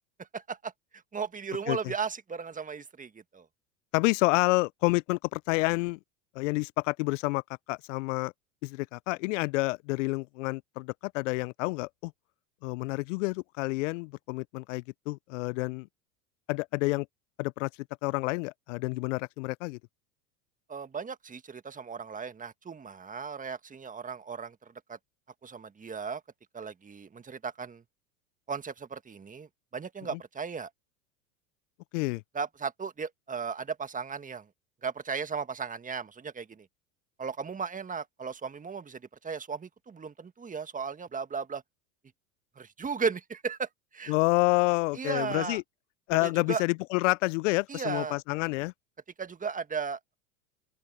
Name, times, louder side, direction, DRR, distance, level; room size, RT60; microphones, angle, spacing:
voice 1, 0.2-0.7 1.1-3.5 20.7-25.0 25.4-26.2 26.5-27.8 28.5-30.7 32.3-34.5 34.8-36.7 37.2-41.6 42.5-44.1 44.9-45.6 46.2-46.6 47.7-48.2 49.2-50.1, right 5 dB, 20° right, 1.7 m, -36 dB
voice 2, 3.9-6.0 6.4-7.4 7.7-8.3 8.6-12.1 12.6-15.9 16.5-17.1 17.4-17.7 18.0-19.8 31.9-32.2 44.1-45.6 46.1-48.7, left 24 dB, 65° left, 0.6 m, -28 dB
open air
hypercardioid pair, 90°, 41 cm